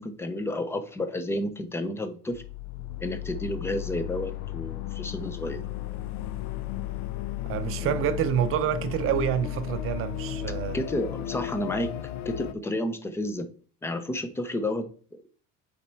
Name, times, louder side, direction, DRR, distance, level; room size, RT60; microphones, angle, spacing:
voice 1, 0.0-2.4 3.0-5.6 7.8-8.0 10.7-11.9 12.2-13.5 13.8-15.2, left 1 dB, 10° left, 0.5 m, -31 dB
sound 1, 2.3-12.5, left 12 dB, 80° left, 0.7 m, -34 dB
voice 2, 7.4-10.8, right 9 dB, 40° right, 0.5 m, -27 dB
7.1 x 4.3 x 4.4 m
cardioid pair, 165°, 34 cm